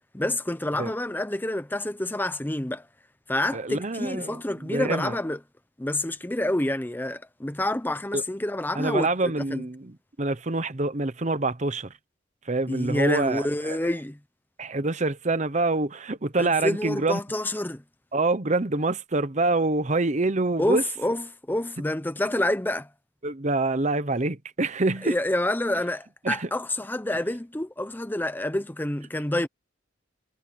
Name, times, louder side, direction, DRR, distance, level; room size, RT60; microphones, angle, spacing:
voice 1, 0.1-2.9 3.3-5.4 5.8-9.6 12.7-14.2 16.4-17.8 20.6-22.9 25.0-29.5, left 1 dB, 10° left, 0.7 m, -28 dB
voice 2, 3.5-4.4 4.7-5.2 8.1-8.2 8.7-11.9 12.5-13.8 14.6-17.2 18.1-20.8 23.2-25.2 26.2-26.5, right 2 dB, 35° right, 0.9 m, -26 dB
head